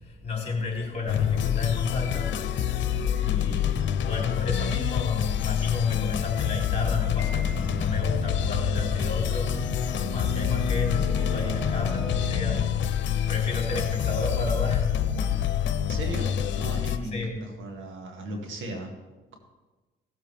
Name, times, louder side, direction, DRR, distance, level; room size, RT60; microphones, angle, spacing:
voice 1, 0.0-2.3 3.2-14.9 17.0-17.3, left 3 dB, 30° left, -1 dB, 3.4 m, -32 dB
sound 1, 1.1-17.0, left 9 dB, 70° left, 0.8 m, -27 dB
Piano, 7.2-8.2, left 1 dB, 30° right, 2.4 m, -44 dB
sound 2, 7.5-14.1, right 3 dB, ahead, 2.7 m, -38 dB
voice 2, 15.8-18.9, right 1 dB, 75° right, 2 dB, 2.2 m, -36 dB
17.5 x 7.6 x 3.5 m, 1.2 s
cardioid pair, 90°, 20 cm